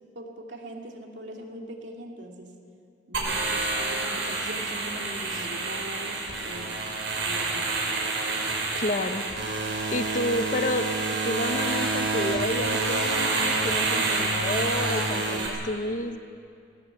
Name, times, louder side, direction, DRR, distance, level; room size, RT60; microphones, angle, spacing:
voice 1, 0.1-2.6 3.1-6.8 7.2-7.7, right 1 dB, 70° right, 1 dB, 2.9 m, -41 dB
sound 1, 3.1-15.5, right 3 dB, 90° right, 5.2 m, -28 dB
voice 2, 8.7-9.3 9.9-10.9 11.2-16.2, left 1 dB, 45° left, 8 dB, 1.1 m, -30 dB
19.0 x 18.0 x 8.4 m, 2.4 s
head